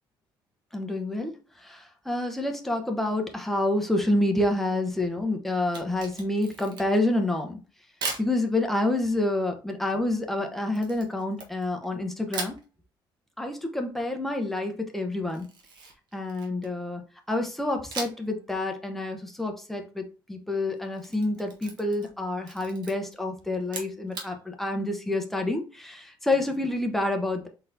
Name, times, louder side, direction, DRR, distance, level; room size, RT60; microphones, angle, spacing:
voice 1, 0.7-1.4 1.6-7.6 8.2-12.6 13.4-15.5 16.1-17.0 17.3-27.5, left 2 dB, 5° left, 0.9 m, -28 dB
Camera, 5.6-7.1 8.0-8.3 10.7-11.9 12.3-12.6 15.3-16.8 17.9-18.3 18.7-18.8 20.8-22.2 22.4-22.9 23.6-24.3, right 4 dB, 55° right, 1.3 m, -38 dB
4.0 x 4.0 x 2.7 m
cardioid pair, 125°, 9 cm